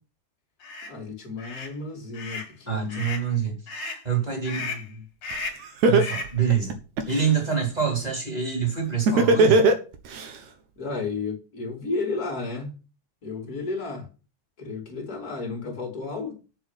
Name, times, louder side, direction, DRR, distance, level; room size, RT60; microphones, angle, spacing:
sound 1, 0.6-0.9 1.4-1.7 2.1-2.5 2.9-3.3 3.7-4.0 4.5-4.9 5.2-5.7 6.0-6.4, left 3 dB, 55° left, 3.3 m, -34 dB
voice 1, 0.9-3.1 4.6-5.0 10.8-12.7 13.2-14.1 14.6-16.4, left 3 dB, 30° left, 2.8 m, -33 dB
voice 2, 2.7-4.7 5.8-6.7 7.1-9.6, right 7 dB, 10° right, 4.1 m, -26 dB
Laughter, 5.3-5.4 5.8-7.3 9.1-10.3, right 3 dB, 70° right, 2.7 m, -18 dB
7.2 x 7.2 x 8.1 m
omnidirectional pair, 3.5 m